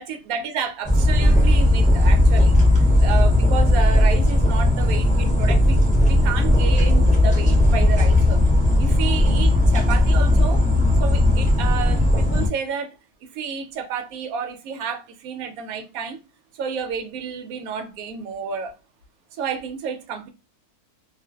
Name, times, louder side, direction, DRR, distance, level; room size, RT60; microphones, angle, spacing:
voice 1, 0.0-8.4 8.8-10.6 11.0-13.0 13.3-16.2 16.5-18.7 19.3-20.3, right 6 dB, 70° right, 0.9 m, -30 dB
sound 1, 0.8-12.5, left 1 dB, 5° left, 0.6 m, -17 dB
2.5 x 2.4 x 2.2 m
omnidirectional pair, 1.7 m